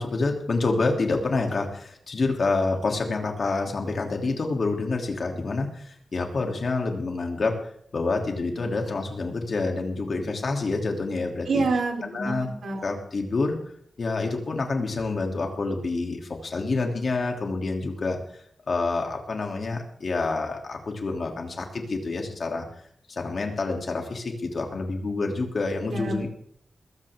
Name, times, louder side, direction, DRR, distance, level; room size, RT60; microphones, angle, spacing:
voice 1, 0.0-7.5 7.9-11.6 12.0-12.5 12.8-13.6 14.0-18.4 18.7-22.7 23.1-26.3, left 3 dB, 45° left, 2 dB, 3.0 m, -27 dB
voice 2, 11.5-12.8 25.9-26.3, right 3 dB, 85° right, 3 dB, 3.6 m, -27 dB
21.0 x 15.0 x 3.7 m, 0.63 s
wide cardioid pair, 175°, 0 cm